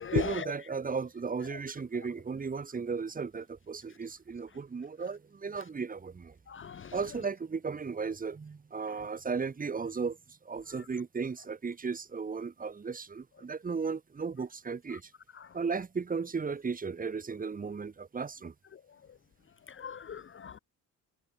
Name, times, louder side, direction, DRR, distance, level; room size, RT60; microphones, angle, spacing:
voice 1, 0.1-6.3 6.9-15.1 15.5-18.5, right 5 dB, 25° right, 1.5 m, -35 dB
voice 2, 6.5-6.9 19.8-20.6, left 8 dB, 35° left, 0.9 m, -35 dB
cardioid pair, 135°, 34 cm